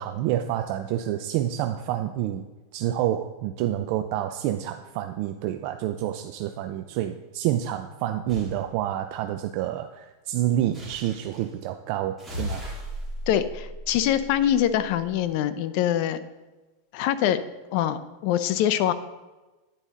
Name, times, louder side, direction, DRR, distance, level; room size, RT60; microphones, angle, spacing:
voice 1, 0.0-2.4 2.7-12.6, right 12 dB, 50° right, 6 dB, 0.3 m, -28 dB
sound 1, 8.3-8.6 10.7-11.5 12.2-14.8, equal, ahead, 2.0 m, -36 dB
voice 2, 13.3-16.2 16.9-17.4 17.7-18.9, left 11 dB, 50° left, 13 dB, 0.5 m, -24 dB
9.8 x 4.0 x 3.7 m, 1.1 s
supercardioid pair, 150°, 0 cm